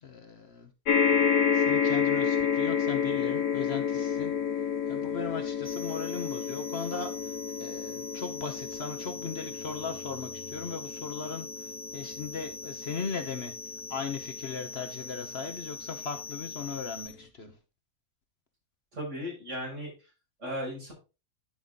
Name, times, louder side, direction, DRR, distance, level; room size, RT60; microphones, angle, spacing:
voice 1, 0.0-0.7 1.5-4.3 4.9-13.5 13.9-17.6, left 5 dB, 50° left, 6 dB, 1.2 m, -38 dB
sound 1, 0.9-15.4 16.2-16.3 16.5-16.6, left 7 dB, 80° left, 1.3 m, -30 dB
sound 2, 5.6-17.1, left 2 dB, 35° left, 3.5 m, -43 dB
voice 2, 18.9-19.9 20.4-20.9, equal, 60° right, -3 dB, 6.4 m, -36 dB
10.5 x 5.6 x 3.8 m, 0.30 s
omnidirectional pair, 1.4 m